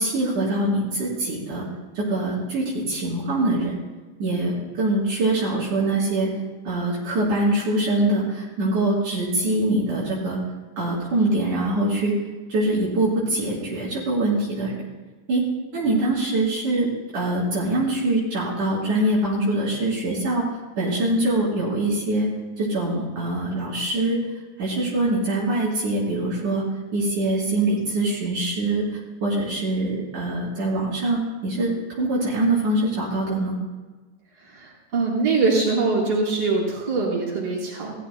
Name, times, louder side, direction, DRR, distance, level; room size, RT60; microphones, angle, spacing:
voice 1, 0.0-1.6 2.0-3.7 4.2-6.3 6.7-10.4 10.8-12.1 12.5-14.7 15.3-15.4 15.7-20.5 20.8-22.3 22.6-24.2 24.6-26.6 26.9-31.7 32.0-33.6, right 2 dB, 70° right, -7 dB, 5.4 m, -23 dB
voice 2, 34.4-37.9, right 3 dB, 45° right, -6 dB, 5.0 m, -23 dB
18.0 x 14.5 x 2.3 m, 1.3 s
omnidirectional pair, 3.7 m